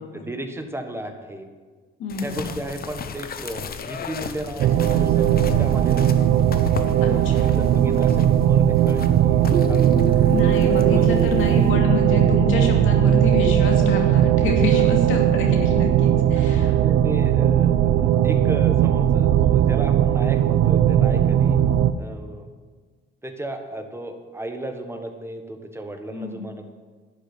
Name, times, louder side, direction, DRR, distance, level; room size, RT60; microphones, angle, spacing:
voice 1, 0.0-1.5 2.2-6.2 7.1-10.3 10.7-11.4 14.7-14.8 16.3-21.6 22.0-22.5 23.2-26.7, right 1 dB, 10° right, 5 dB, 1.4 m, -35 dB
voice 2, 2.0-2.6 7.0-7.6 10.3-16.8 26.1-26.4, left 4 dB, 85° left, 1 dB, 2.5 m, -27 dB
sound 1, 2.1-11.7, left 6 dB, 50° left, 1.0 m, -36 dB
sound 2, 4.6-21.9, right 10 dB, 85° right, 0.6 m, -18 dB
sound 3, 9.5-15.1, right 3 dB, 45° right, 2.9 m, -31 dB
11.5 x 6.5 x 9.2 m, 1.4 s
cardioid pair, 90°, 20 cm